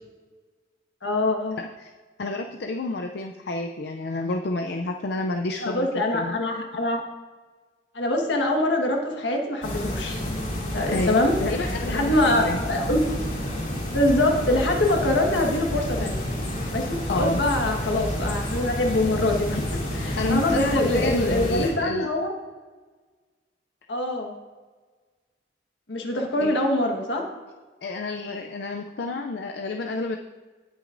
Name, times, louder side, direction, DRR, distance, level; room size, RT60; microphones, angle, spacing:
voice 1, 1.0-1.6 5.6-7.0 7.9-10.2 10.7-11.3 11.9-13.1 13.9-16.2 16.7-19.6 19.9-22.3 23.9-24.3 25.9-27.3, left 1 dB, 75° left, 2 dB, 1.4 m, -24 dB
voice 2, 1.6-1.9 2.2-5.9 6.1-6.4 10.9-12.6 17.1-17.4 20.2-22.1 26.4-26.6 27.8-30.2, left 2 dB, 60° left, 4 dB, 0.4 m, -29 dB
sound 1, 9.6-21.7, left 1 dB, 45° left, 2.5 m, -29 dB
17.5 x 6.2 x 2.6 m, 1.4 s
head